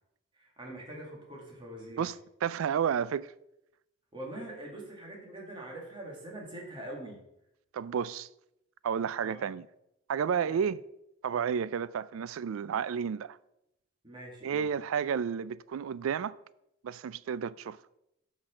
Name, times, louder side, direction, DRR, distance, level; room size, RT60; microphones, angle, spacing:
voice 1, 0.4-2.1 4.1-7.2 9.2-9.5 10.4-10.6 14.0-14.7, right 1 dB, 25° right, 2.2 m, -44 dB
voice 2, 2.4-3.3 7.7-8.3 8.8-9.7 10.1-10.8 11.2-13.4 14.4-16.3 16.8-17.8, right 7 dB, 80° right, 0.3 m, -31 dB
6.1 x 6.1 x 6.4 m
head